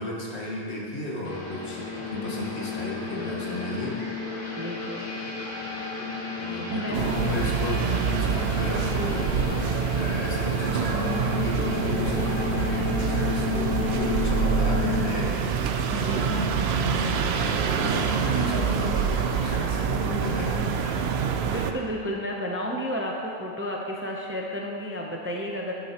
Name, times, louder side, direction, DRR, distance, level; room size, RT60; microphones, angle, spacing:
voice 1, 0.0-4.0 6.4-15.7 16.0-21.1, left 2 dB, 70° left, -5 dB, 1.8 m, -33 dB
sound 1, 1.2-15.1, left 5 dB, 50° left, 1.4 m, -32 dB
voice 2, 4.6-5.1 6.7-7.0 7.9-8.1 15.9-16.3 21.4-25.7, equal, 15° right, -1 dB, 0.5 m, -32 dB
sound 2, 6.9-21.7, right 7 dB, 70° right, 0.8 m, -26 dB
10.0 x 8.9 x 3.0 m, 2.5 s
omnidirectional pair, 1.2 m